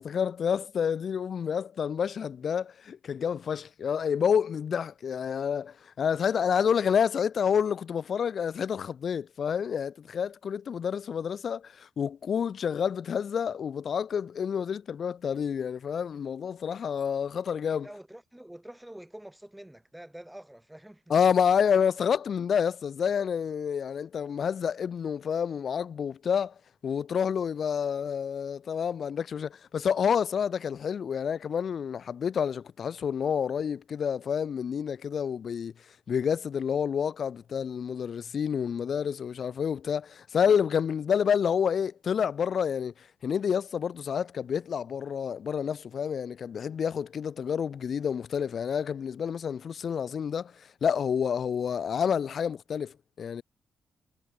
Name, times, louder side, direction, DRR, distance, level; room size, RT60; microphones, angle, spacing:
voice 1, 0.0-17.9 21.1-26.5 26.8-35.7 36.1-53.4, left 7 dB, 60° left, 0.3 m, -29 dB
voice 2, 17.8-21.1, right 1 dB, 5° right, 5.4 m, -46 dB
cardioid pair, 85°, 0 cm